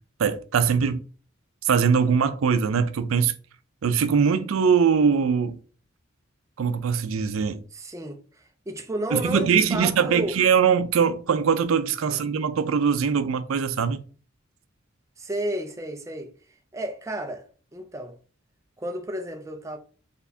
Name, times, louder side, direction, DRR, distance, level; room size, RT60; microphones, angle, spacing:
voice 1, 0.2-1.0 1.6-3.3 3.8-5.6 6.6-7.6 9.1-14.0, right 6 dB, 85° right, 0.4 m, -22 dB
voice 2, 7.7-10.4 12.0-12.2 15.2-16.3 16.7-17.5 17.7-18.2 18.8-19.8, right 1 dB, 15° right, 0.5 m, -32 dB
4.1 x 3.3 x 2.7 m
head